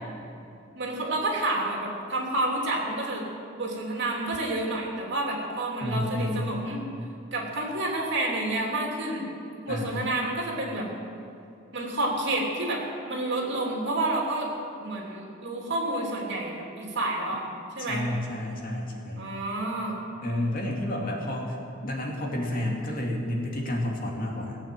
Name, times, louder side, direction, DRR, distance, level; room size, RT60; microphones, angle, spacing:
voice 1, 0.7-3.2 3.6-6.8 7.3-9.3 9.6-10.9 11.7-14.5 14.8-17.4 17.8-18.0 19.1-20.0, right 2 dB, 60° right, -1 dB, 3.2 m, -29 dB
voice 2, 5.8-6.6 9.7-10.2 17.8-19.3 20.2-21.6 21.8-24.6, left 1 dB, 45° left, -1 dB, 2.6 m, -30 dB
18.0 x 8.7 x 7.6 m, 2.6 s
head